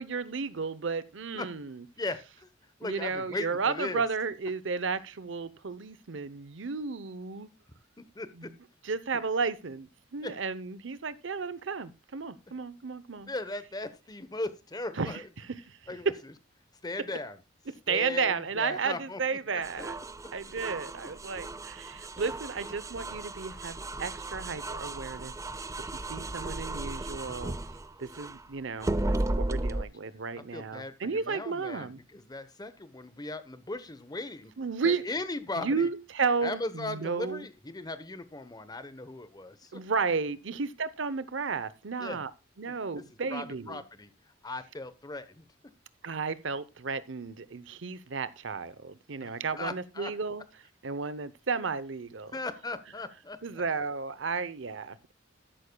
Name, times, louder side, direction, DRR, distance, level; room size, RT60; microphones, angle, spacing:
voice 1, 0.0-1.8 2.8-7.5 8.3-8.5 8.8-13.3 15.0-16.2 17.9-20.0 20.3-25.7 25.9-27.6 28.0-32.0 34.6-35.0 35.6-37.5 39.7-42.3 42.6-43.8 46.0-50.4 50.8-52.3 53.4-55.1, right 5 dB, 65° right, 0.8 m, -33 dB
voice 2, 2.0-2.5 2.8-4.0 8.0-8.5 10.2-10.3 13.3-15.2 15.9-16.1 16.8-17.4 17.9-19.2 19.5-19.6 29.4-29.9 30.5-34.5 34.8-35.9 36.4-39.8 42.0-42.2 43.3-44.1 44.4-45.4 49.2-49.3 49.6-50.1 52.3-53.4, left 2 dB, 20° left, 0.9 m, -38 dB
sound 1, 19.6-28.4 28.8-29.8, right 2 dB, 15° right, 0.5 m, -35 dB
13.0 x 11.5 x 2.3 m
head